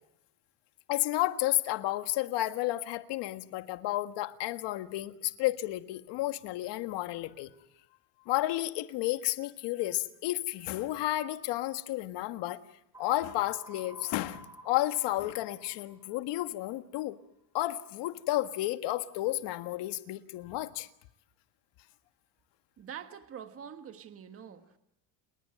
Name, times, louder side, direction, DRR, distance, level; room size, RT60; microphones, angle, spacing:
voice 1, 0.9-7.5 8.3-12.6 13.0-17.2 17.5-20.9, left 16 dB, 65° left, 1.7 m, -32 dB
sound 1, 12.9-16.8, right 2 dB, 5° right, 3.5 m, -52 dB
voice 2, 22.8-24.8, right 8 dB, 30° right, 1.5 m, -45 dB
30.0 x 20.5 x 7.8 m
cardioid pair, 160°, 46 cm